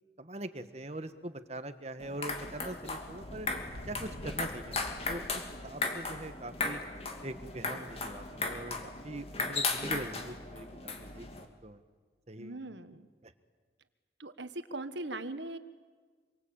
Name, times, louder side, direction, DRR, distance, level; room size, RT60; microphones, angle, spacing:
voice 1, 0.2-3.5 3.9-6.8 7.2-11.8 12.3-12.6 13.2-13.3, right 1 dB, 35° right, 10 dB, 1.5 m, -42 dB
sound 1, 2.0-11.5, left 3 dB, 35° left, 2.6 m, -37 dB
sound 2, 2.5-9.0 9.4-9.5 10.6-10.7 10.9-11.2, left 1 dB, 55° left, 1.7 m, -51 dB
voice 2, 12.4-13.1 14.2-15.6, right 2 dB, 80° right, 11 dB, 1.6 m, -40 dB
27.0 x 23.5 x 8.8 m, 1.5 s
head